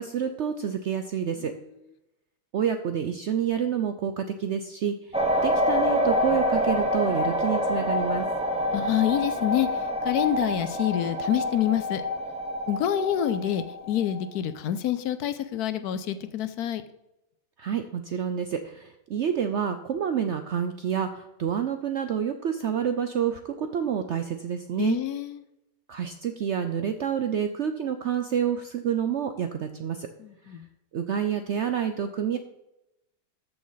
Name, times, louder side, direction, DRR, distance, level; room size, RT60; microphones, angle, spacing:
voice 1, 0.0-1.5 2.5-8.3 17.6-25.0 25.9-30.1 30.9-32.4, right 8 dB, 70° right, 8 dB, 0.7 m, -28 dB
sound 1, 5.1-14.2, left 1 dB, 5° right, 0.6 m, -27 dB
voice 2, 8.7-9.7 10.0-12.0 12.7-16.8 24.8-25.4 30.2-30.7, left 11 dB, 70° left, 12 dB, 1.1 m, -27 dB
13.5 x 6.2 x 4.0 m, 0.89 s
omnidirectional pair, 1.8 m